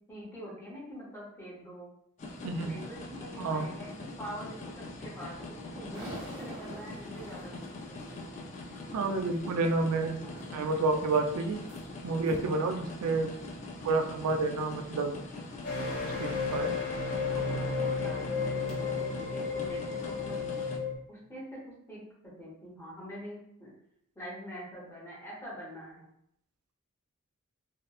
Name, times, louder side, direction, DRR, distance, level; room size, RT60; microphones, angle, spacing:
voice 1, 0.1-1.9 2.4-8.3 17.4-20.5 21.1-23.7 24.2-26.1, equal, 10° left, -6 dB, 0.8 m, -45 dB
sound 1, 2.2-20.8, left 2 dB, 30° left, 0.3 m, -43 dB
voice 2, 3.4-3.7 8.9-10.2 10.5-11.6 12.0-13.3 13.8-15.1 16.2-16.7 17.3-17.7, right 3 dB, 80° right, 5 dB, 0.4 m, -29 dB
sound 2, 5.9-9.7 10.2-10.8 11.1-11.8 12.2-12.6 13.2-13.3 14.0-14.1 16.6-16.7 17.2-17.8, right 1 dB, 25° right, 0.7 m, -46 dB
sound 3, 15.6-21.0, left 4 dB, 50° left, 1.1 m, -33 dB
2.8 x 2.1 x 2.3 m, 0.74 s
head